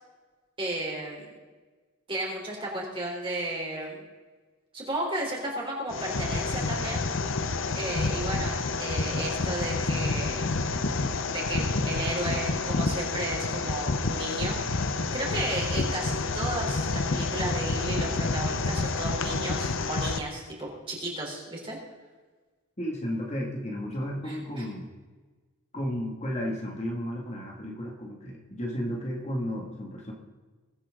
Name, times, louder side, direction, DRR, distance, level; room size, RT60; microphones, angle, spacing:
voice 1, 0.6-1.3 2.1-4.0 4.7-7.1 7.8-10.5 11.2-14.6 15.1-21.8 24.2-24.7, right 1 dB, 25° right, -3 dB, 3.8 m, -34 dB
sound 1, 5.9-20.2, left 3 dB, 65° left, 0.8 m, -29 dB
voice 2, 22.8-24.9 25.7-30.1, equal, 30° left, -1 dB, 2.2 m, -33 dB
22.0 x 9.4 x 3.8 m, 1.3 s
head